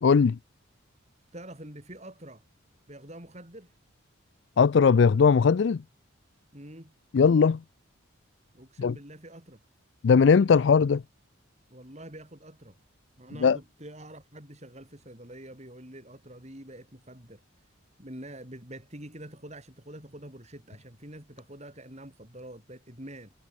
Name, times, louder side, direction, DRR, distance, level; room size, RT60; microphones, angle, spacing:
voice 1, 0.0-0.4 4.6-5.8 7.1-7.6 8.8-8.9 10.0-11.0 13.4-13.6, left 5 dB, 55° left, 0.4 m, -19 dB
voice 2, 1.3-2.4 2.9-3.7 6.5-6.9 8.5-9.6 11.7-12.8 13.2-17.4 18.0-23.3, right 1 dB, 30° right, 5.4 m, -46 dB
head